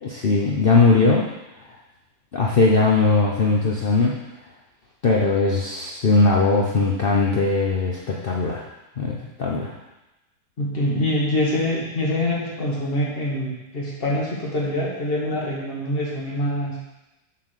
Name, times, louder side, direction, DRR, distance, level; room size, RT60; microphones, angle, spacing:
voice 1, 0.0-1.3 2.3-4.2 5.0-8.6 9.0-9.7, left 3 dB, 60° left, -2 dB, 0.5 m, -19 dB
voice 2, 10.6-16.8, left 1 dB, 30° left, -5 dB, 2.0 m, -25 dB
7.2 x 4.6 x 6.6 m, 0.99 s
omnidirectional pair, 2.1 m